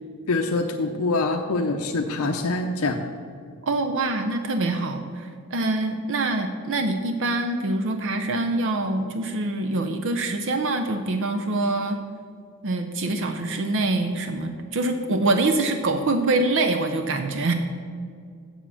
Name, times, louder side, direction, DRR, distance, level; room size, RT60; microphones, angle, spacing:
voice 1, 0.3-3.0, left 3 dB, 75° left, 2 dB, 0.6 m, -24 dB
voice 2, 3.6-12.0 12.6-17.5, right 2 dB, 60° right, 6 dB, 0.6 m, -25 dB
7.4 x 7.2 x 7.0 m, 2.2 s
head